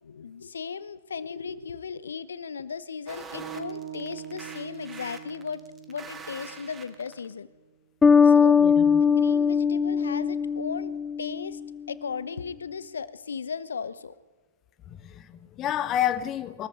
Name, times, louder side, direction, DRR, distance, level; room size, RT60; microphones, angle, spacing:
voice 1, 0.0-7.5 8.2-8.6 9.0-10.9 11.2-11.6 11.9-14.2, left 6 dB, 70° left, 0.9 m, -36 dB
sound 1, 3.1-7.3, right 5 dB, 15° right, 1.5 m, -44 dB
sound 2, 3.3-7.6, right 9 dB, 65° right, 2.9 m, -43 dB
Bass guitar, 8.0-11.6, left 6 dB, 10° left, 0.4 m, -20 dB
voice 2, 8.6-9.0 14.9-16.7, left 11 dB, 25° left, 0.8 m, -30 dB
22.5 x 14.0 x 3.8 m
figure-of-eight pair, 115°, 0 cm